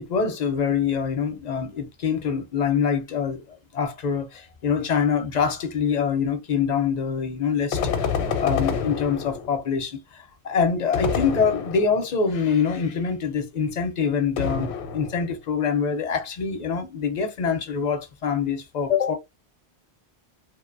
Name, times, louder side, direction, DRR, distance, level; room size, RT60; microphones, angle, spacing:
voice 1, 0.0-8.1 8.4-19.1, left 6 dB, 55° left, 0.5 m, -25 dB
sound 1, 7.7-9.7 10.9-12.1 14.4-15.3, left 6 dB, 80° left, 0.9 m, -28 dB
2.7 x 2.1 x 2.4 m
omnidirectional pair, 1.1 m